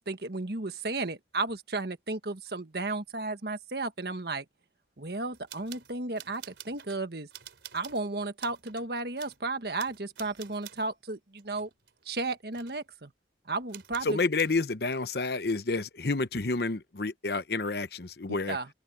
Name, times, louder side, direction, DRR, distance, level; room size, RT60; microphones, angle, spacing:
voice 1, 0.0-4.4 5.0-7.3 7.7-11.7 12.0-13.1 13.4-14.2 18.5-18.7, right 3 dB, 60° right, 1.6 m, -34 dB
sound 1, 5.3-7.0 7.3-8.0 8.4-8.9 9.2-9.4 9.8-10.9 11.4-12.3 12.5-12.8 13.7-14.6, right 11 dB, 90° right, 3.8 m, -49 dB
voice 2, 14.0-18.6, left 3 dB, 60° left, 0.9 m, -29 dB
head